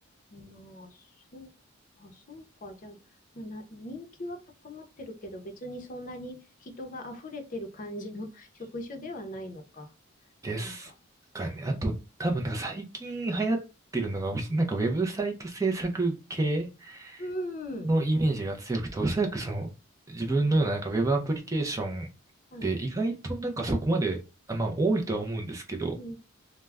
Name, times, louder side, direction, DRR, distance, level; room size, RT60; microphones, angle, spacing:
voice 1, 0.3-1.0 1.3-1.5 2.0-3.0 3.3-4.4 4.6-9.9 10.5-10.7 11.6-11.8 17.2-17.9 20.4-20.7 22.5-22.7 25.9-26.2, left 1 dB, 40° left, 0.5 m, -40 dB
voice 2, 10.4-10.9 11.3-11.9 12.2-13.6 13.9-17.2 17.8-19.7 20.1-22.1 22.6-24.2 24.5-25.9, right 2 dB, 15° right, 0.3 m, -28 dB
2.2 x 2.0 x 3.3 m
head